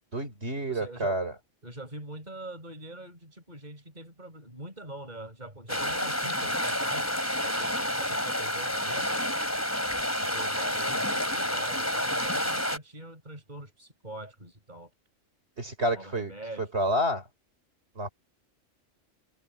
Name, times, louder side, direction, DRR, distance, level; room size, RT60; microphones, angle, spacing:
voice 1, 0.1-1.3 15.6-16.3 16.6-17.2 18.0-18.1, right 1 dB, 55° right, 4.2 m, -29 dB
voice 2, 0.7-1.2 1.6-7.1 7.4-9.2 10.2-14.9 15.9-16.7, right 1 dB, 35° right, 6.7 m, -44 dB
sound 1, 5.7-12.8, equal, 10° left, 4.9 m, -29 dB
omnidirectional pair, 1.3 m